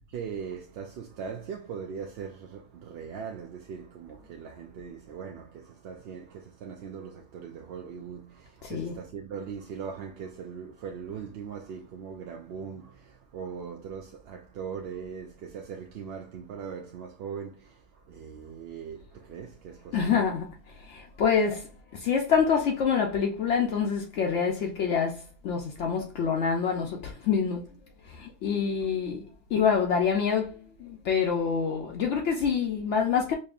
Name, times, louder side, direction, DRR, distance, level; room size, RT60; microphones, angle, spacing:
voice 1, 0.1-20.2, right 6 dB, 65° right, 0.7 m, -40 dB
voice 2, 8.6-8.9 19.9-20.5 20.8-27.7 28.0-33.3, left 6 dB, 70° left, 0.9 m, -26 dB
5.2 x 2.7 x 2.4 m
omnidirectional pair, 1.3 m